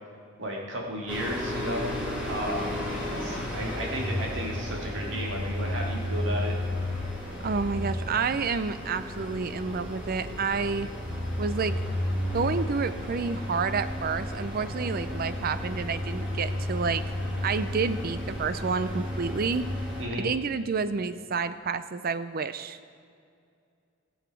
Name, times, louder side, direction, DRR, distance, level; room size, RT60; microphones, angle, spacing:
voice 1, 0.4-1.9 2.3-6.5 20.0-20.3, equal, 60° right, -1 dB, 2.1 m, -33 dB
sound 1, 1.1-20.0, left 1 dB, 5° right, 3.0 m, -32 dB
voice 2, 7.4-10.9 11.4-11.8 12.3-17.0 17.4-19.7 20.2-22.8, right 5 dB, 45° right, 13 dB, 0.5 m, -29 dB
18.5 x 7.2 x 4.6 m, 2.4 s
head